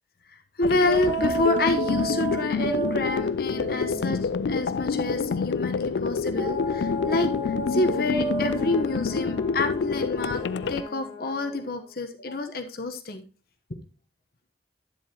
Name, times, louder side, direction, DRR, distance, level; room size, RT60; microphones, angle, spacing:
sound 1, 0.6-10.8, left 5 dB, 80° left, 0.4 m, -27 dB
voice 1, 0.6-4.2 4.5-10.4 10.7-13.2 13.7-13.8, left 2 dB, 55° left, 6 dB, 1.0 m, -28 dB
alotf loop vox notch, 0.9-5.5 6.4-11.1, right 3 dB, 30° right, 1.8 m, -33 dB
Brass instrument, 7.1-12.2, left 5 dB, 35° left, 1.7 m, -44 dB
10.5 x 7.6 x 2.9 m, 0.33 s
head